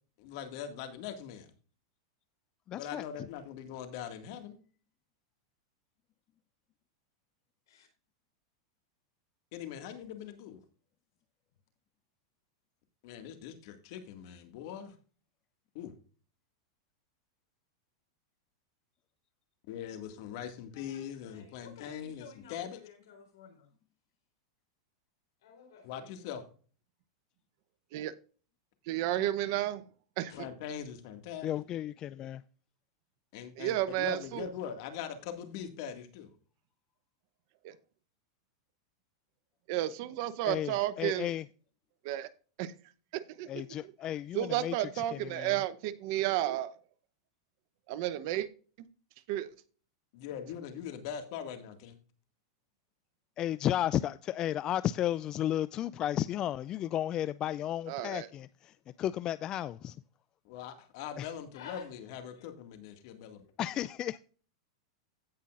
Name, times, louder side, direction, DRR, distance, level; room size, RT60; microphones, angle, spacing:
voice 1, 0.2-1.5 2.7-4.6 9.5-10.6 13.0-15.0 15.7-15.9 19.7-22.8 25.8-26.5 30.4-31.5 33.3-36.3 50.1-52.0 60.4-63.4, left 8 dB, 55° left, 2.0 m, -42 dB
voice 2, 2.7-3.3 31.4-32.4 40.5-41.4 43.5-45.6 53.4-60.0 61.2-61.3 63.6-64.2, left 12 dB, 30° left, 0.3 m, -33 dB
voice 3, 20.7-23.7 25.4-26.2 30.3-30.4 61.5-61.9 62.3-62.5, left 7 dB, 75° left, 4.1 m, -52 dB
voice 4, 28.9-29.8 30.2-30.3 33.6-34.5 37.6-37.7 39.7-41.3 42.0-42.3 42.6-42.7 43.1-43.9 44.3-46.7 47.9-48.5 49.3-49.5 57.9-58.3, right 13 dB, 55° right, 0.8 m, -32 dB
16.5 x 5.6 x 2.5 m
hypercardioid pair, 125°, 2 cm